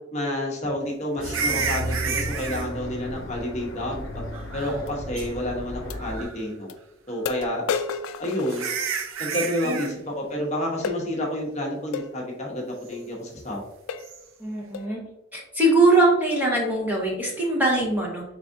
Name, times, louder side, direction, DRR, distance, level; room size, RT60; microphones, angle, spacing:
voice 1, 0.1-4.0 4.5-6.7 7.1-7.6 8.2-8.7 9.2-13.6, left 1 dB, 35° left, -1 dB, 0.9 m, -29 dB
sound 1, 1.2-6.2, equal, 65° left, 0.7 m, -34 dB
sound 2, 1.2-2.7 4.3-4.9 5.2-5.3 5.9-6.4 7.8-7.9 8.5-9.9 14.0-14.2, right 6 dB, 70° right, 0.5 m, -30 dB
sound 3, 4.9-5.0 5.9-6.0 6.7-6.8 7.3-9.2 10.8-11.1 11.9-12.1 12.9-13.1 13.5-13.6 13.9-14.2 14.7-15.0, left 6 dB, 80° left, 0.3 m, -32 dB
voice 2, 14.4-15.0 15.3-18.2, right 2 dB, 10° right, -3 dB, 0.8 m, -22 dB
4.8 x 3.5 x 2.6 m, 0.86 s
head